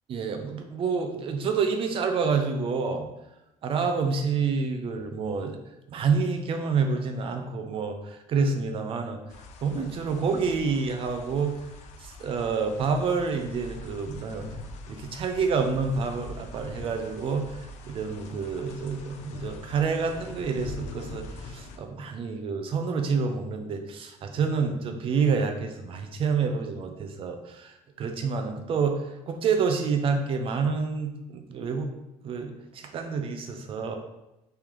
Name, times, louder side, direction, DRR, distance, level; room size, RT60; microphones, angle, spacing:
voice 1, 0.1-3.1 3.6-5.6 5.9-9.2 9.6-11.5 12.0-14.5 14.9-31.9 32.2-34.0, right 5 dB, 45° right, 5 dB, 0.5 m, -28 dB
sound 1, 9.3-21.8, left 2 dB, 65° left, 0.4 m, -43 dB
3.6 x 3.3 x 2.9 m, 0.93 s
cardioid pair, 145°, 13 cm